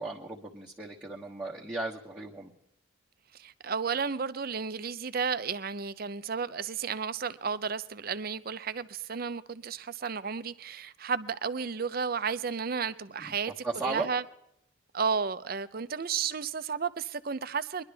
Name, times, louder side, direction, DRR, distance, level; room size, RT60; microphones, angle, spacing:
voice 1, 0.0-2.5 13.3-13.4 13.6-14.1, right 3 dB, 10° right, 1.3 m, -36 dB
voice 2, 3.3-14.2 14.9-17.8, right 6 dB, 50° right, 0.6 m, -33 dB
22.5 x 11.5 x 3.4 m
head